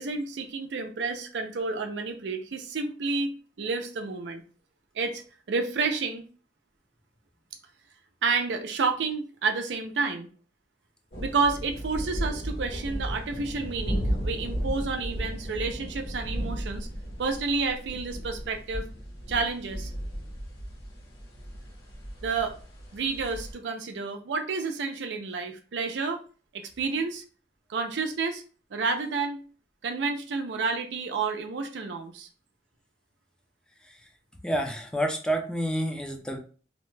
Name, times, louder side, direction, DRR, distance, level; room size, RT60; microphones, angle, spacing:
voice 1, 0.0-4.4 4.9-5.2 5.5-6.3 8.2-10.3 11.2-16.9 17.2-18.9 19.3-19.9 22.2-22.6 22.9-26.2 26.5-27.2 27.7-28.4 28.7-29.4 29.8-32.3, right 4 dB, 80° right, 5 dB, 0.5 m, -30 dB
sound 1, 11.1-23.5, equal, 70° left, 1.4 m, -35 dB
voice 2, 34.4-36.4, equal, 5° left, 3 dB, 0.4 m, -28 dB
2.7 x 2.1 x 3.2 m, 0.38 s
head